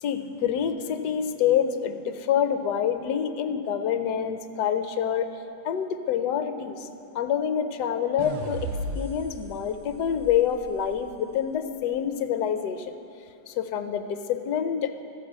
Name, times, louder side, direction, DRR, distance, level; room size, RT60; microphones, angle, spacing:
voice 1, 0.0-5.3 5.6-6.9 7.1-8.7 9.0-12.9 13.5-14.9, left 8 dB, 70° left, 9 dB, 1.3 m, -27 dB
sound 1, 8.2-11.4, right 1 dB, 85° right, 1.5 m, -36 dB
14.0 x 9.7 x 7.4 m, 2.7 s
omnidirectional pair, 2.0 m